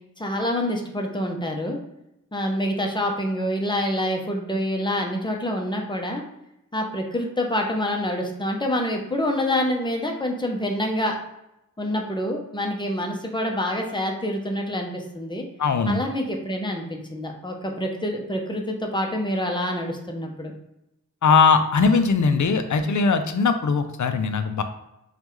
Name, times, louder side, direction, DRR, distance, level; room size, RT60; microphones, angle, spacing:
voice 1, 0.2-1.8 2.3-6.2 6.7-11.2 11.8-15.4 15.9-20.5, left 1 dB, 15° left, 1 dB, 0.8 m, -26 dB
voice 2, 15.6-16.0 21.2-24.6, left 5 dB, 65° left, 8 dB, 0.5 m, -20 dB
5.3 x 2.4 x 3.1 m, 0.87 s
wide cardioid pair, 65°, 31 cm